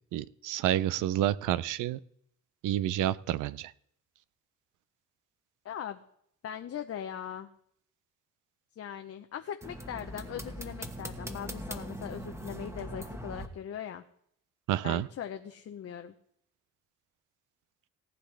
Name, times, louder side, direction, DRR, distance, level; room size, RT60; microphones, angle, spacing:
voice 1, 0.1-2.0 2.6-3.7 14.7-15.1, right 12 dB, 85° right, 18 dB, 0.5 m, -29 dB
voice 2, 5.6-6.0 6.4-7.5 8.8-14.0 14.8-16.1, left 9 dB, 50° left, 6 dB, 0.8 m, -40 dB
sound 1, 9.6-13.5, equal, 10° right, 1.3 m, -40 dB
18.5 x 9.9 x 3.4 m, 0.68 s
cardioid pair, 90°, 30 cm